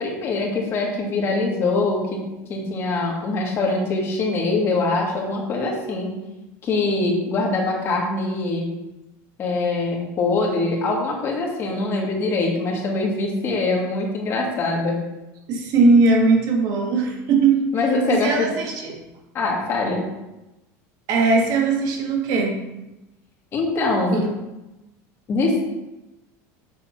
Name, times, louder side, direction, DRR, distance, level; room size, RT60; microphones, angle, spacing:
voice 1, 0.0-6.1 6.6-8.7 9.4-15.0 17.7-18.5 19.3-20.1 23.5-24.2 25.3-25.6, left 3 dB, 30° left, -1 dB, 1.9 m, -23 dB
voice 2, 15.5-17.6 18.1-18.9 21.1-22.6 24.1-24.3, right 3 dB, 55° right, 1 dB, 1.6 m, -19 dB
6.9 x 3.8 x 5.9 m, 0.99 s
cardioid pair, 150°, 8 cm